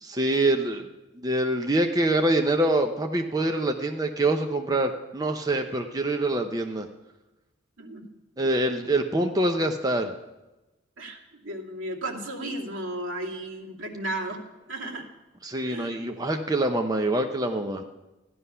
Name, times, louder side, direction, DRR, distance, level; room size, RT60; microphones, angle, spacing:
voice 1, 0.0-0.9 1.2-6.9 8.4-10.1 15.4-17.8, right 1 dB, 20° right, 4 dB, 0.7 m, -25 dB
voice 2, 7.8-8.1 11.0-14.4 14.7-15.1 15.7-16.0, right 1 dB, 80° right, -2 dB, 2.4 m, -34 dB
14.5 x 11.0 x 5.6 m, 1.0 s
head